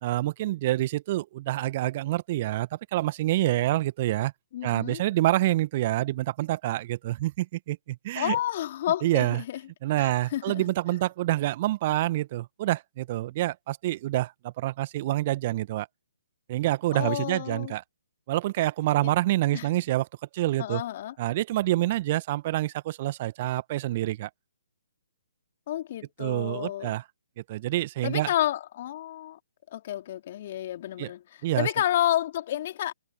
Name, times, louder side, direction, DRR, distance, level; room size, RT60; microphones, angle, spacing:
voice 1, 0.0-4.3 4.6-8.4 9.0-9.4 9.8-15.9 16.5-17.8 18.3-20.1 20.3-20.8 21.2-24.3 26.2-27.0 27.4-28.3 31.0-31.1 31.4-31.7, right 16 dB, 35° right, 1.4 m, -27 dB
voice 2, 4.5-5.0 8.1-9.6 10.0-10.7 16.9-17.7 19.0-19.1 19.5-19.7 20.6-21.1 25.7-26.9 28.0-29.4 29.7-31.2 31.6-32.9, left 12 dB, 40° left, 2.6 m, -30 dB
figure-of-eight pair, 135°, 0 cm